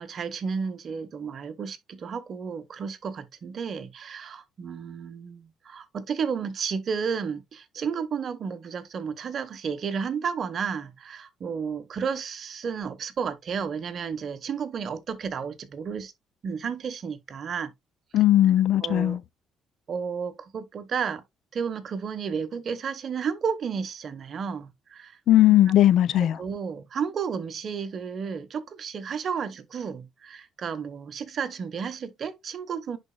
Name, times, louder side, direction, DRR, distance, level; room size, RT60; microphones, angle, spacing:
voice 1, 0.0-16.1 16.4-17.7 18.8-19.2 19.9-21.2 21.5-25.2 26.1-33.0, right 6 dB, 45° right, 1.1 m, -32 dB
voice 2, 18.1-19.2 25.3-26.4, left 13 dB, 65° left, 0.5 m, -18 dB
10.5 x 4.3 x 2.3 m
cardioid pair, 110°, 0 cm